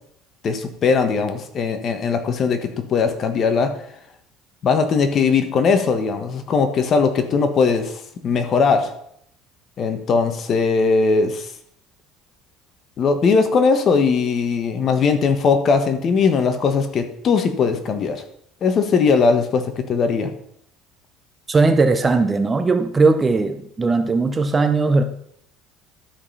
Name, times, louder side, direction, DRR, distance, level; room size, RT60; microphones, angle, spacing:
voice 1, 0.4-3.8 4.6-8.9 9.8-11.5 13.0-18.2 18.6-20.3, left 5 dB, 40° left, 7 dB, 1.4 m, -19 dB
voice 2, 21.5-25.0, right 3 dB, 20° right, 9 dB, 0.8 m, -18 dB
12.0 x 5.2 x 5.6 m, 0.70 s
cardioid pair, 130°, 0 cm